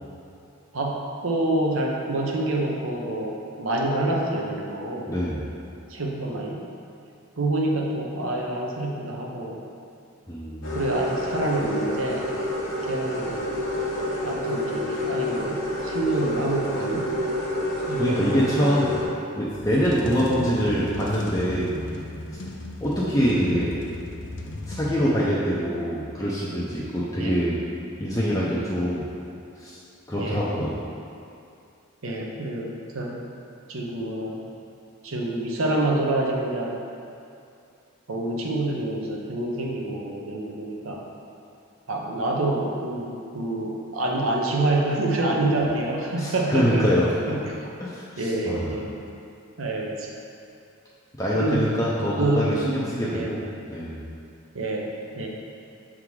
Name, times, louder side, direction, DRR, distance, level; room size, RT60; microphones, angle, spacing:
voice 1, 0.7-5.1 5.9-6.7 7.4-9.6 10.7-12.3 12.9-13.6 14.2-17.2 17.9-18.4 27.2-27.4 30.2-30.4 32.0-33.2 33.7-34.4 35.0-36.7 38.1-41.0 41.9-46.9 47.3-47.5 48.2-48.9 49.6-50.1 51.3-51.7 52.2-52.6 53.0-53.4 54.5-55.3, right 2 dB, 80° right, -1 dB, 0.9 m, -27 dB
voice 2, 5.1-5.5 10.3-10.8 18.0-19.0 19.4-21.8 22.8-23.8 24.7-27.6 28.0-29.1 29.6-29.8 30.1-30.8 46.2-47.4 47.8-48.7 51.2-53.4 53.7-54.0, equal, 15° left, -7 dB, 0.6 m, -24 dB
sound 1, 10.6-19.1, left 1 dB, 75° left, 1.0 m, -28 dB
sound 2, 19.4-25.4, left 1 dB, 55° left, 0.6 m, -36 dB
7.0 x 3.7 x 4.7 m, 2.5 s
head